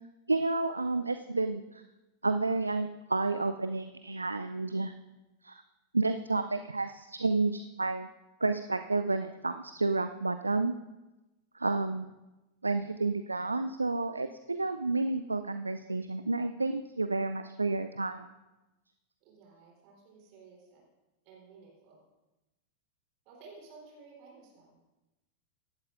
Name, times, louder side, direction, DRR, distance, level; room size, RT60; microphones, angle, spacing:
voice 1, 0.3-1.8 2.2-4.9 5.4-5.6 5.9-8.1 8.4-10.7 11.5-12.1 12.6-18.2, right 3 dB, 80° right, 10 dB, 0.3 m, -30 dB
voice 2, 19.2-20.8 21.2-22.0 23.3-24.8, right 4 dB, 45° right, -2 dB, 3.6 m, -54 dB
17.0 x 11.5 x 2.5 m, 1.0 s
figure-of-eight pair, 90°, 0 cm